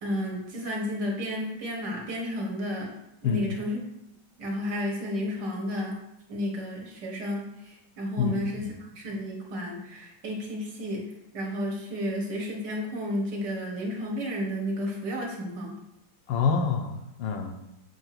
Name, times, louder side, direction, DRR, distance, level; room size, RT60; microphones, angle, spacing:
voice 1, 0.0-2.9 3.2-3.8 4.4-6.0 6.3-15.8, left 1 dB, 60° right, -1 dB, 1.8 m, -32 dB
voice 2, 8.2-8.7 16.3-17.6, left 5 dB, 75° left, 5 dB, 1.3 m, -27 dB
7.7 x 2.7 x 5.8 m, 0.88 s
omnidirectional pair, 2.1 m